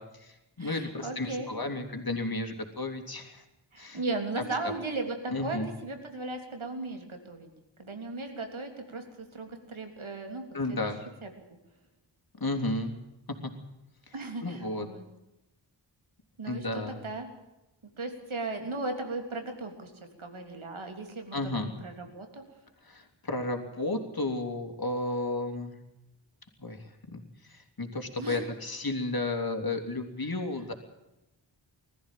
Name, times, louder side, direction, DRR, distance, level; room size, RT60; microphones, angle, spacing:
voice 1, 0.0-3.4 3.8-4.0 4.4-4.5 5.3-5.7 10.5-11.0 12.4-12.9 13.3-13.5 14.1-14.2 14.4-14.9 16.5-17.0 21.3-21.7 22.8-25.8 26.6-30.7, left 2 dB, 50° left, 4 dB, 3.2 m, -33 dB
voice 2, 0.6-1.5 3.7-7.5 7.8-10.4 10.7-10.8 11.2-11.3 14.1-15.0 16.4-17.3 18.0-19.9 20.2-22.4 28.2-28.4, right 3 dB, 90° right, 4 dB, 3.5 m, -36 dB
20.5 x 14.0 x 9.1 m, 0.94 s
wide cardioid pair, 75°, 47 cm